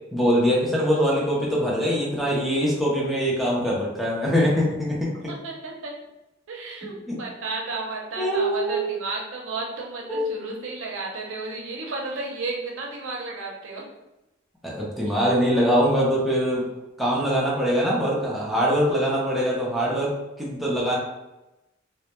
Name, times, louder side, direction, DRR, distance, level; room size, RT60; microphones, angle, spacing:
voice 1, 0.1-5.1 6.8-7.1 8.2-9.0 10.1-10.3 14.6-16.7 17.0-20.1 20.4-21.0, equal, ahead, -6 dB, 0.5 m, -23 dB
voice 2, 5.3-5.9 6.5-13.8 15.1-15.2, right 3 dB, 80° right, -1 dB, 0.5 m, -33 dB
2.1 x 2.1 x 2.9 m, 0.96 s
head